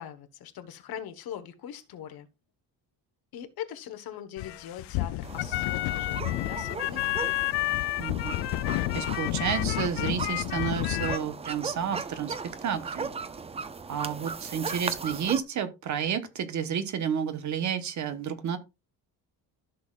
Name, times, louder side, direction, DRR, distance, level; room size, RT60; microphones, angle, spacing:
voice 1, 0.0-2.3 3.3-7.4, left 10 dB, 65° left, 1.4 m, -41 dB
sound 1, 4.4-11.2, left 18 dB, 80° left, 0.5 m, -30 dB
sound 2, 5.2-15.4, right 5 dB, 15° right, 0.4 m, -38 dB
voice 2, 8.0-8.3 8.9-12.3 12.6-13.1 13.9-18.6, right 8 dB, 45° right, 1.2 m, -31 dB
14.0 x 6.4 x 2.4 m
cardioid pair, 180°, 40 cm